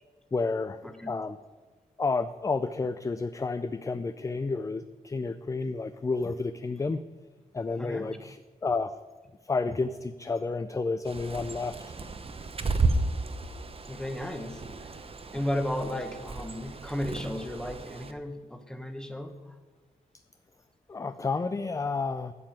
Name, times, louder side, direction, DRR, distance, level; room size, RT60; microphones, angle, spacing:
voice 1, 0.3-0.8 1.1-1.4 2.0-7.0 7.5-8.9 9.5-11.9 20.9-22.3, left 4 dB, 20° left, 11 dB, 0.3 m, -30 dB
voice 2, 7.8-8.1 13.9-14.6 15.3-19.5 21.6-21.7, left 1 dB, 5° left, 6 dB, 1.1 m, -34 dB
Bird, 11.0-18.1, right 3 dB, 35° right, 0.8 m, -33 dB
12.0 x 5.5 x 8.9 m, 1.3 s
wide cardioid pair, 125°, 16 cm